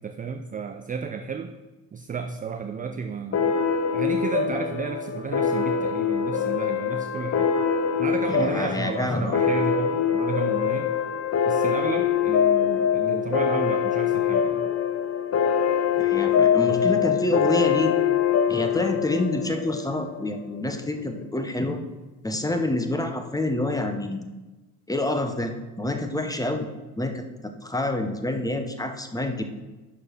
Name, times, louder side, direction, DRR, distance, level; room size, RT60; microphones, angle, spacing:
voice 1, 0.0-1.5 1.9-3.5 3.9-7.5 8.0-10.9 11.5-14.7, right 5 dB, 20° right, 6 dB, 0.5 m, -32 dB
sound 1, 3.3-20.4, left 7 dB, 35° left, 0.7 m, -24 dB
voice 2, 8.3-9.3 16.0-18.0 18.5-21.8 22.2-24.3 24.9-26.7 27.0-29.4, left 2 dB, 10° left, 6 dB, 0.9 m, -27 dB
11.0 x 4.8 x 4.4 m, 1.1 s
figure-of-eight pair, 50°, 47 cm